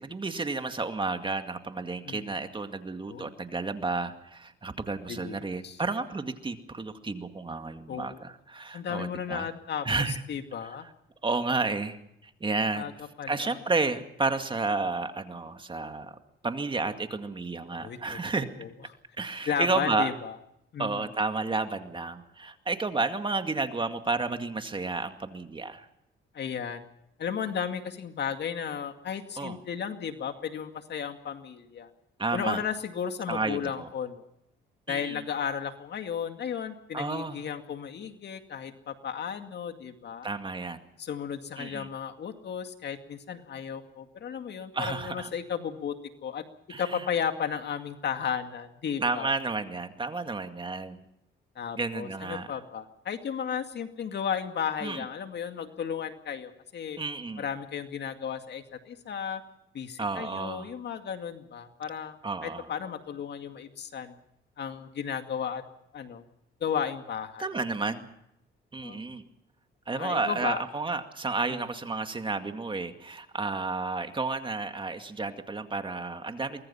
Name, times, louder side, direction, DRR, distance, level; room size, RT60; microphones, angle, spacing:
voice 1, 0.0-9.5 9.8-10.2 10.6-10.9 11.2-12.9 13.3-16.2 16.4-18.5 19.2-20.1 20.8-25.9 29.4-29.6 32.2-32.6 33.3-33.9 34.9-35.2 36.9-37.4 40.2-40.8 41.6-41.9 44.7-45.3 46.7-47.0 49.0-51.0 51.8-52.5 54.8-55.0 57.0-57.4 60.0-60.7 62.2-62.7 67.4-68.0 68.7-69.2 69.9-76.6, right 3 dB, 25° right, 7 dB, 2.2 m, -31 dB
voice 2, 5.1-5.8 7.9-8.2 8.7-9.9 10.3-10.9 12.7-12.9 13.2-13.6 17.7-18.0 18.6-18.7 19.5-20.4 20.7-21.1 26.3-26.8 27.2-31.9 32.3-34.3 34.9-40.3 41.0-46.0 46.2-46.4 46.8-49.3 51.6-57.0 57.4-59.4 59.7-64.2 64.6-65.6 65.9-66.2 66.6-67.5 68.8-69.0 69.9-70.6 71.5-71.6, left 7 dB, 60° left, 7 dB, 2.2 m, -34 dB
24.0 x 20.5 x 5.7 m, 0.79 s
cardioid pair, 90°, 20 cm